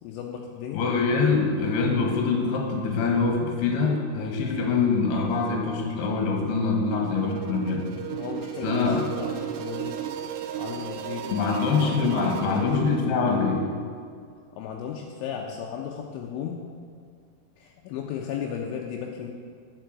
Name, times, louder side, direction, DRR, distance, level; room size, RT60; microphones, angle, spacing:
voice 1, 0.0-0.8 8.1-10.1 10.5-11.4 11.8-12.7 14.6-16.6 17.6-19.3, left 8 dB, 80° left, 0 dB, 3.0 m, -35 dB
voice 2, 0.7-7.9 8.6-9.1 11.3-13.7, left 4 dB, 65° left, 1 dB, 3.1 m, -24 dB
sound 1, 7.0-13.0, right 10 dB, 80° right, 2.7 m, -35 dB
9.3 x 6.9 x 7.8 m, 2.2 s
omnidirectional pair, 5.7 m